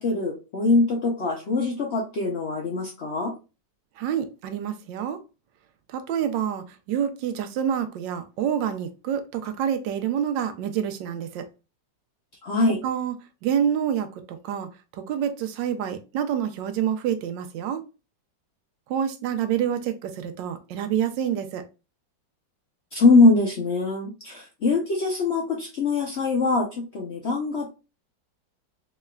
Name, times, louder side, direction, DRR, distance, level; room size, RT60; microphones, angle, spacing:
voice 1, 0.0-3.3 12.4-12.8 22.9-27.7, left 3 dB, 80° left, 0.6 m, -22 dB
voice 2, 4.0-5.2 5.9-11.5 12.8-13.1 13.4-17.8 18.9-21.6, right 9 dB, 75° right, 1.2 m, -27 dB
3.9 x 3.2 x 2.2 m
omnidirectional pair, 2.1 m